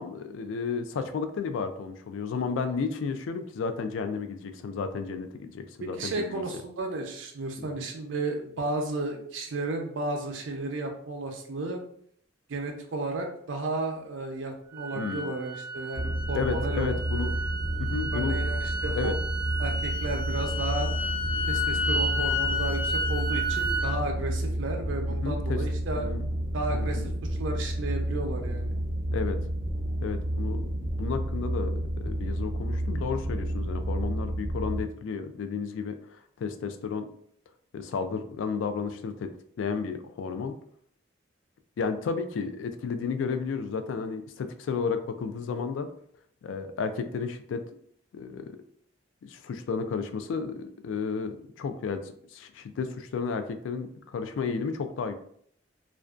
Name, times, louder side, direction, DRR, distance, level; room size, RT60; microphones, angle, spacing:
voice 1, 0.0-6.4 7.8-7.9 14.9-15.3 16.3-17.4 17.8-18.5 18.9-19.1 25.2-25.6 26.0-26.2 26.7-27.1 29.1-29.4 30.0-37.1 37.7-39.3 39.6-40.5 41.8-45.9 46.4-47.6 48.1-48.6 49.2-52.0 52.3-55.1, left 5 dB, 85° left, 10 dB, 0.3 m, -32 dB
voice 2, 5.8-11.8 12.5-17.0 18.1-19.1 19.6-20.9 21.5-26.1 26.5-27.1 27.4-28.7, right 2 dB, 90° right, 3 dB, 0.5 m, -33 dB
sound 1, 14.7-23.9, equal, 10° right, 0.5 m, -32 dB
sound 2, 15.9-34.8, right 1 dB, 40° left, 1.2 m, -30 dB
2.5 x 2.1 x 2.3 m, 0.65 s
head